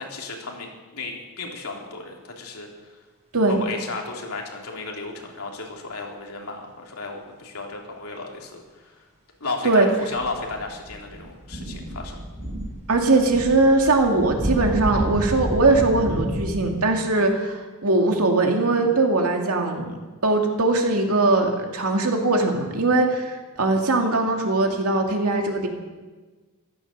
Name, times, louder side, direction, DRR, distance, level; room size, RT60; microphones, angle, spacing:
voice 1, 0.0-3.0 3.5-9.0 9.4-12.2, left 3 dB, 75° left, 0 dB, 3.3 m, -34 dB
sound 1, 10.0-16.5, equal, 30° right, 5.6 m, -31 dB
voice 2, 12.9-25.7, right 2 dB, 80° right, 2 dB, 2.4 m, -20 dB
15.0 x 13.0 x 6.7 m, 1.3 s
head